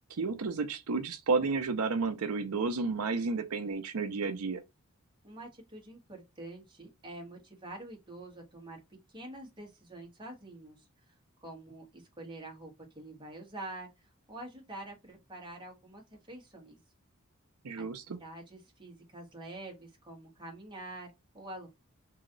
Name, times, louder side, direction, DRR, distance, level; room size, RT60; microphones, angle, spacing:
voice 1, 0.2-4.6 17.6-18.2, right 4 dB, 85° right, 0.6 m, -31 dB
voice 2, 5.2-8.8 9.1-11.1 11.4-16.8 17.8-21.7, right 1 dB, 20° right, 1.4 m, -46 dB
3.0 x 2.8 x 3.8 m
head